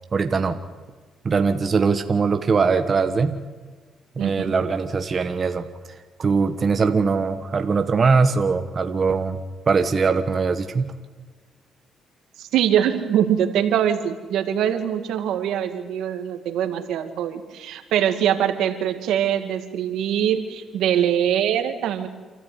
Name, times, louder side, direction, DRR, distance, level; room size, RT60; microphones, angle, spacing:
voice 1, 0.1-0.6 1.2-3.4 4.2-10.9, right 4 dB, 40° right, 7 dB, 1.3 m, -21 dB
voice 2, 4.2-4.5 12.4-22.1, right 10 dB, 85° right, 7 dB, 2.2 m, -23 dB
28.0 x 13.5 x 9.5 m, 1.4 s
cardioid pair, 90°, 0 cm